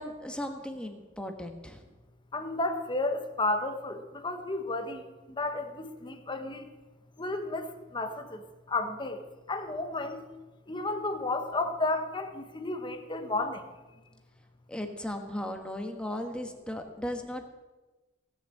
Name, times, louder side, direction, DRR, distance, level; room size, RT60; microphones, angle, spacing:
voice 1, 0.0-1.8 14.7-17.5, left 1 dB, 5° left, 4 dB, 1.4 m, -36 dB
voice 2, 2.3-6.7 7.2-10.2 10.7-13.6, left 2 dB, 25° left, 7 dB, 1.1 m, -32 dB
17.5 x 7.3 x 7.7 m, 1.2 s
head